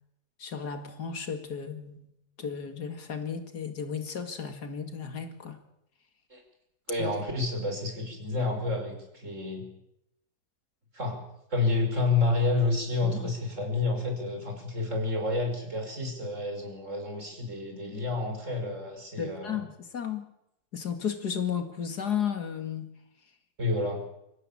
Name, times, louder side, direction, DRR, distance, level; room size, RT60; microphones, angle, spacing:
voice 1, 0.4-2.1 2.4-5.6 7.0-7.1 13.0-13.3 19.2-20.3 20.7-22.9, left 7 dB, 85° left, 7 dB, 2.8 m, -34 dB
voice 2, 6.9-9.7 10.9-11.2 11.5-19.6 23.6-24.0, left 3 dB, 50° right, 3 dB, 5.9 m, -29 dB
25.0 x 15.5 x 8.7 m, 0.82 s
omnidirectional pair, 1.7 m